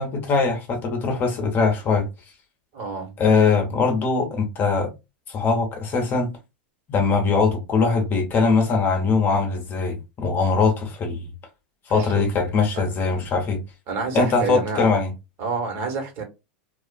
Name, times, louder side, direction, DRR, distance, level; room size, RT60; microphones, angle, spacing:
voice 1, 0.0-2.1 3.2-4.9 5.3-6.3 6.9-11.2 11.9-13.6 14.1-15.1, left 4 dB, 35° left, 0.8 m, -21 dB
voice 2, 2.7-3.2 11.9-12.2 12.7-12.8 13.9-14.9 15.4-16.2, right 4 dB, 45° right, 1.2 m, -28 dB
2.3 x 2.3 x 2.2 m
hypercardioid pair, 100°, 6 cm